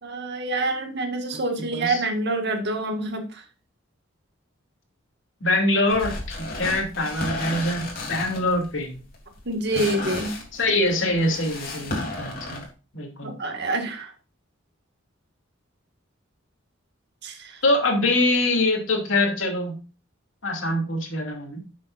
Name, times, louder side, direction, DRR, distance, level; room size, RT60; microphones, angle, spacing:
voice 1, 0.0-3.2 9.5-10.3 13.2-14.1 17.2-17.6, right 2 dB, 60° right, 5 dB, 2.0 m, -27 dB
voice 2, 1.6-2.0 5.4-9.0 10.5-12.6 12.9-13.3 17.6-19.8 20.4-21.6, left 2 dB, 70° left, 1 dB, 2.9 m, -24 dB
sound 1, 5.9-12.7, left 2 dB, 50° left, 3.3 m, -33 dB
12.0 x 7.5 x 2.6 m, 0.32 s
head